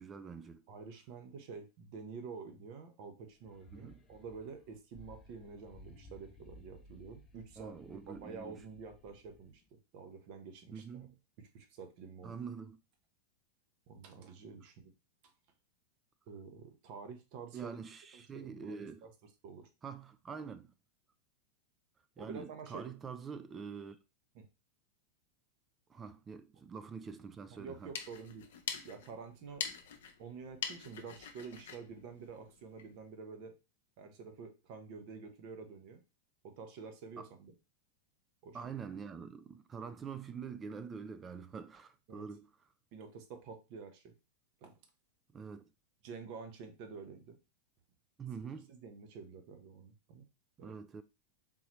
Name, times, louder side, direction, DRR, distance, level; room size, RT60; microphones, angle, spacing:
voice 1, 0.0-0.6 3.7-4.0 7.6-8.6 10.7-11.2 12.2-12.8 17.5-19.1 19.8-20.7 22.2-24.0 25.9-27.9 37.2-37.3 38.5-42.5 45.3-45.7 48.2-48.7 50.6-51.0, right 6 dB, 25° right, 0.4 m, -45 dB
voice 2, 0.7-7.8 8.1-9.6 9.9-10.8 11.4-12.4 13.9-14.9 16.3-17.8 18.1-19.1 19.4-19.7 22.2-22.9 24.3-24.5 27.5-28.4 28.8-29.6 30.2-33.6 34.0-36.0 36.4-37.5 38.4-38.7 42.1-42.2 42.9-44.1 44.6-44.7 46.0-47.4 48.2-48.4 48.7-50.2 50.6-50.8, right 5 dB, 55° right, 0.9 m, -49 dB
sound 1, 3.3-9.6, left 1 dB, 25° left, 0.7 m, -58 dB
sound 2, 27.6-33.0, left 7 dB, 70° left, 0.7 m, -45 dB
3.7 x 2.9 x 3.0 m
hypercardioid pair, 95°, 0 cm